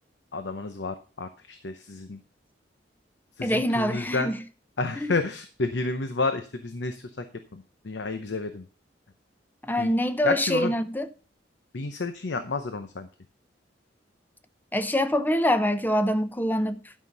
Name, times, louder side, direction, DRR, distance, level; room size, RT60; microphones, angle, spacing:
voice 1, 0.3-2.2 3.4-4.3 4.8-7.2 7.5-8.7 9.8-9.9 10.2-10.7 11.7-13.1, left 3 dB, 70° left, 0.8 m, -30 dB
voice 2, 3.4-4.4 5.0-5.1 9.6-11.1 14.7-16.9, equal, 10° left, 0.7 m, -25 dB
11.5 x 5.8 x 5.3 m
head